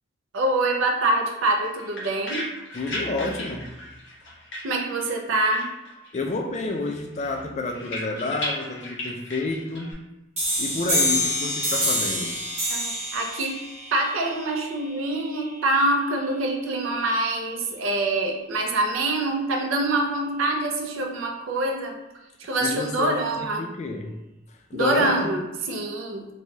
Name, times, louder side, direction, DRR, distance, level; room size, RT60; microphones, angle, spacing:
voice 1, 0.3-2.5 4.6-5.7 12.7-13.6 13.9-22.0 22.4-23.7 24.7-26.3, right 2 dB, 80° right, 2 dB, 0.5 m, -25 dB
sound 1, 1.5-5.3 5.5-6.4 6.7-9.9, left 1 dB, 60° left, 0.7 m, -36 dB
voice 2, 2.7-3.7 6.1-9.9 10.6-12.4 22.6-24.1 24.7-25.3, left 2 dB, 35° left, 3 dB, 0.3 m, -29 dB
sound 2, 10.4-15.8, equal, 30° right, 1.0 m, -27 dB
3.1 x 2.2 x 2.7 m, 0.99 s
head